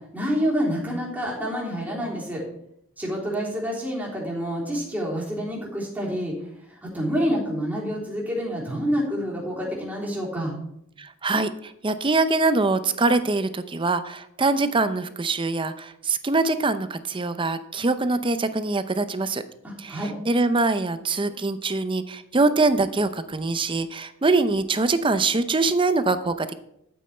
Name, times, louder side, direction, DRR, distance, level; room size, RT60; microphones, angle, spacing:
voice 1, 0.1-2.4 3.0-6.3 6.8-10.6 19.6-20.1, equal, 10° right, -5 dB, 3.6 m, -27 dB
voice 2, 11.0-11.5 11.8-19.4 19.8-26.5, right 3 dB, 25° right, 12 dB, 0.6 m, -23 dB
12.5 x 8.6 x 4.4 m, 0.77 s
head